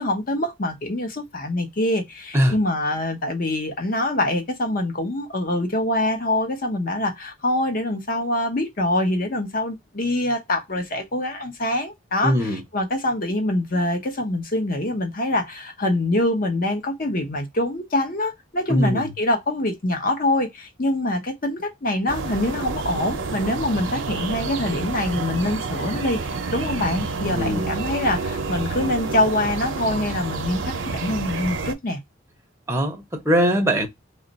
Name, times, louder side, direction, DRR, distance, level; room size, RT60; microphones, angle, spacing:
voice 1, 0.0-32.0, left 1 dB, 45° left, 0.9 m, -24 dB
voice 2, 12.2-12.6 18.7-19.0 27.3-27.7 32.7-33.9, equal, 15° right, 0.6 m, -21 dB
sound 1, 22.1-31.7, right 4 dB, 75° right, 0.6 m, -29 dB
3.1 x 2.4 x 3.9 m
head